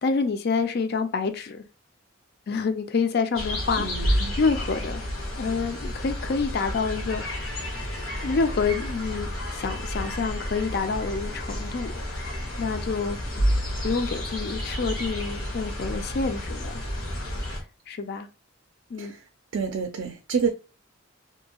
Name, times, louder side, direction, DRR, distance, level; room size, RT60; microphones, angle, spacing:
voice 1, 0.0-1.6 2.5-5.0 5.4-7.2 8.2-12.2 12.6-13.2 13.8-16.8 17.9-18.3 18.9-19.1, left 4 dB, 55° left, 0.4 m, -27 dB
sound 1, 3.3-17.6, equal, 85° left, 1.1 m, -30 dB
voice 2, 3.8-4.3 19.0-20.5, right 6 dB, 65° right, 0.4 m, -29 dB
2.7 x 2.6 x 2.8 m
head